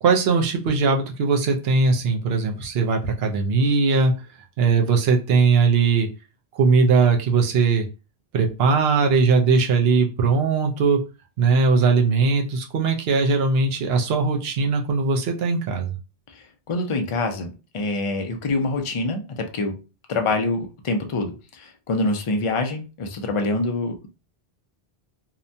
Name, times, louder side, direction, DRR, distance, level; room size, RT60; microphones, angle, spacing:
voice 1, 0.0-4.1 4.6-6.1 6.6-7.9 8.3-11.0 11.4-15.9, right 4 dB, 70° right, 0.8 m, -20 dB
voice 2, 16.7-19.8 20.1-24.1, left 2 dB, 50° left, 0.4 m, -25 dB
2.8 x 2.2 x 2.6 m
omnidirectional pair, 1.1 m